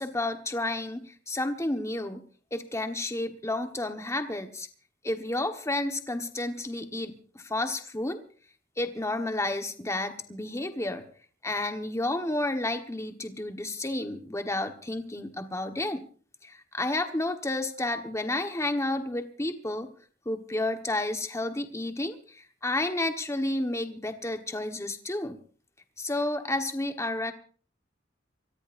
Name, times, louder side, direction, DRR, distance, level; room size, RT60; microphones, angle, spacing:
voice 1, 0.0-2.2 2.5-4.7 5.0-8.2 8.8-11.0 11.4-16.1 16.4-19.9 20.2-25.4 26.0-27.3, left 2 dB, 15° left, 6 dB, 1.4 m, -31 dB
25.0 x 18.0 x 2.6 m, 0.42 s
head